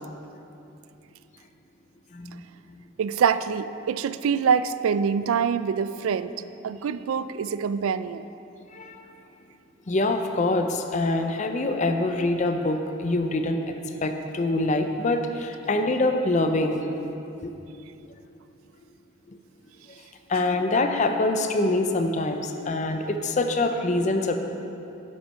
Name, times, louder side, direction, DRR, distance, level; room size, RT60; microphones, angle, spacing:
voice 1, 2.1-2.9 8.7-9.1 9.9-13.7 14.0-16.8 17.4-17.5 19.3-19.4 20.3-24.5, left 2 dB, 35° left, 6 dB, 0.5 m, -25 dB
voice 2, 3.0-6.3 6.6-8.3, right 6 dB, 85° right, 14 dB, 0.3 m, -25 dB
8.3 x 7.5 x 5.5 m, 2.8 s
head